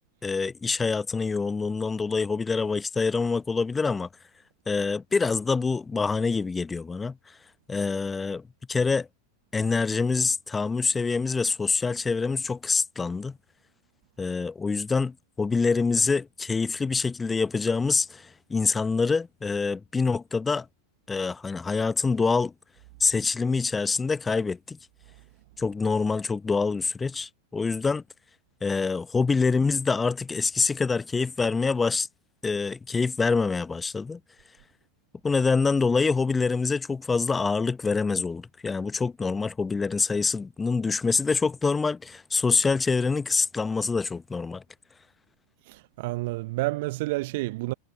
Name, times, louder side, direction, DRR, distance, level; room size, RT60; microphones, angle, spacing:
voice 1, 0.2-4.1 4.7-7.2 7.7-8.4 8.7-9.1 9.5-13.4 14.2-20.7 21.1-22.5 23.0-24.8 25.6-28.0 28.6-32.1 32.4-34.2 35.2-44.6, left 4 dB, 15° left, 0.8 m, -25 dB
voice 2, 45.7-47.7, right 21 dB, 50° right, 0.7 m, -30 dB
figure-of-eight pair, 90°, 0 cm